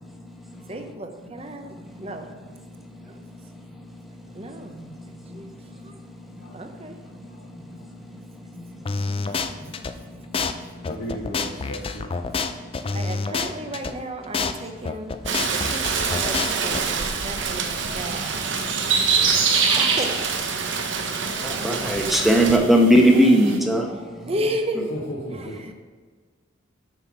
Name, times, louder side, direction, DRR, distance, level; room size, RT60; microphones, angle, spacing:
voice 1, 0.7-2.3 3.0-3.3 4.3-6.0 6.5-7.0 12.8-15.1 15.5-18.3 19.1-20.1 22.2-22.3 23.8-25.7, right 1 dB, 30° right, 5 dB, 0.8 m, -34 dB
sound 1, 8.9-9.9 10.3-10.5 10.8-13.9 14.3-14.5 14.8-16.8, left 4 dB, 30° left, 0.4 m, -27 dB
voice 2, 10.8-12.0 19.2-19.5 24.0-24.3 24.9-25.6, equal, 70° left, -4 dB, 1.1 m, -35 dB
Rain, 15.3-22.6, right 5 dB, 65° right, 0.8 m, -28 dB
sound 2, 16.4-23.6, right 5 dB, 85° right, 1.2 m, -26 dB
voice 3, 19.7-20.0 21.4-23.9, equal, ahead, 1 dB, 1.0 m, -18 dB
7.6 x 5.8 x 6.0 m, 1.5 s
head